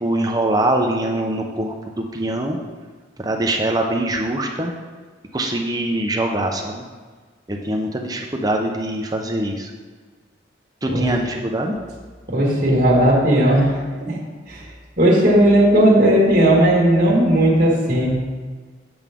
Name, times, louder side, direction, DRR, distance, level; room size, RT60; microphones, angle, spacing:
voice 1, 0.0-2.6 3.2-4.7 5.3-6.8 7.5-9.7 10.8-11.8, right 1 dB, 20° right, 1 dB, 0.6 m, -23 dB
voice 2, 12.3-14.2 14.5-14.6 15.0-18.2, right 1 dB, 40° right, -5 dB, 1.8 m, -16 dB
7.9 x 7.1 x 3.6 m, 1.4 s
head